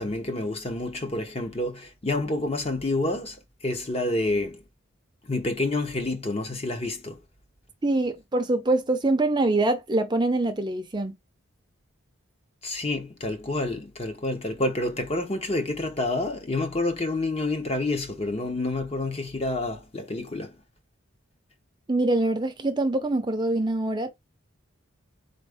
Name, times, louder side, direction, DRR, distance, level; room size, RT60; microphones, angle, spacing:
voice 1, 0.0-4.6 5.2-7.2 12.6-20.6, left 2 dB, 30° left, 0.8 m, -28 dB
voice 2, 7.8-11.1 21.9-24.1, right 2 dB, 20° right, 0.6 m, -24 dB
4.2 x 2.6 x 4.8 m
head